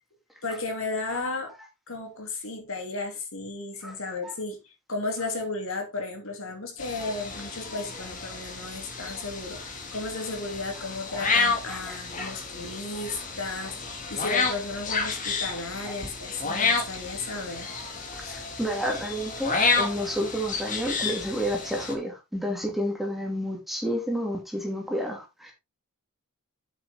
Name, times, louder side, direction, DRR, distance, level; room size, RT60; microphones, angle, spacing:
voice 1, 0.4-1.5 1.9-4.6 4.9-17.7 18.2-18.4, left 3 dB, 65° left, 3.0 m, -34 dB
sound 1, 6.8-21.9, left 4 dB, 35° left, 2.1 m, -30 dB
voice 2, 11.7-12.3 18.3-25.5, equal, ahead, 2.5 m, -30 dB
8.7 x 7.0 x 3.7 m
head